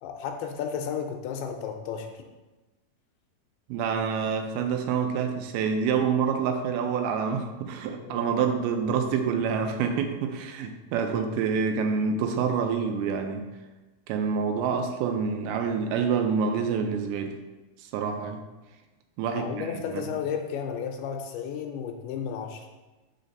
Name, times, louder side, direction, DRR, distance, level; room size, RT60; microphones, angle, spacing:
voice 1, 0.0-2.2 8.0-8.3 19.3-22.7, left 7 dB, 85° left, 4 dB, 2.6 m, -33 dB
voice 2, 3.7-13.5 14.1-17.4 17.8-18.4 19.2-20.1, right 6 dB, 85° right, 6 dB, 2.5 m, -27 dB
5.2 x 4.7 x 5.3 m, 1.1 s
omnidirectional pair, 4.5 m